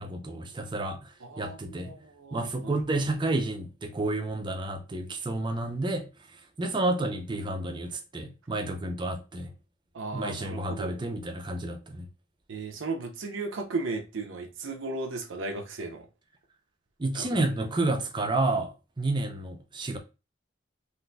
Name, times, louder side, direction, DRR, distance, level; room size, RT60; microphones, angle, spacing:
voice 1, 0.0-1.9 2.3-6.1 6.6-9.5 10.1-12.1 17.0-20.0, right 2 dB, 25° right, 0.5 m, -30 dB
voice 2, 1.2-2.8 9.9-11.0 12.5-16.1 17.1-17.5, right 3 dB, 80° right, 0.6 m, -36 dB
3.8 x 2.6 x 2.2 m
head